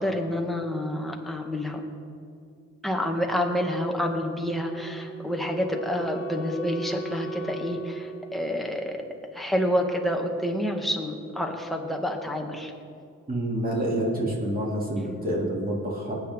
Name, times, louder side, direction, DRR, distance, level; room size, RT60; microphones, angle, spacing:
voice 1, 0.0-1.8 2.8-9.0 9.3-12.7, equal, ahead, 1 dB, 1.8 m, -28 dB
Wind instrument woodwind instrument, 4.4-9.4, right 4 dB, 55° right, 2.2 m, -39 dB
voice 2, 13.3-16.2, right 1 dB, 30° right, -3 dB, 3.2 m, -27 dB
19.0 x 9.1 x 3.8 m, 2.4 s
cardioid pair, 90°, 30 cm